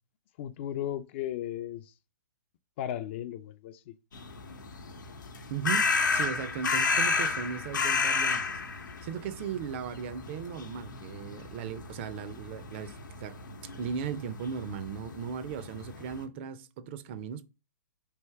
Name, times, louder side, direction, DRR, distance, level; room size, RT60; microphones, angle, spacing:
voice 1, 0.4-1.9 2.8-3.9, left 11 dB, 40° left, 0.3 m, -35 dB
sound 1, 4.1-16.2, left 4 dB, 85° left, 0.8 m, -32 dB
voice 2, 5.5-8.6 9.0-13.4 13.8-17.4, right 7 dB, 40° right, 0.4 m, -37 dB
3.4 x 2.8 x 4.4 m
hypercardioid pair, 145°, 10 cm